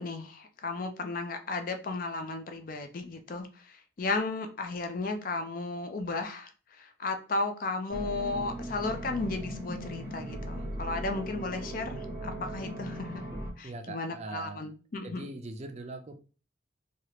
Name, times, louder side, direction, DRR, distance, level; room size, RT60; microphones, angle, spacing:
voice 1, 0.0-13.2 13.6-15.3, left 3 dB, 45° left, 0.4 m, -34 dB
sound 1, 7.9-13.5, right 1 dB, 10° right, 0.8 m, -38 dB
voice 2, 13.6-14.7 15.0-16.1, right 2 dB, 35° right, 0.4 m, -41 dB
3.2 x 2.4 x 2.9 m
head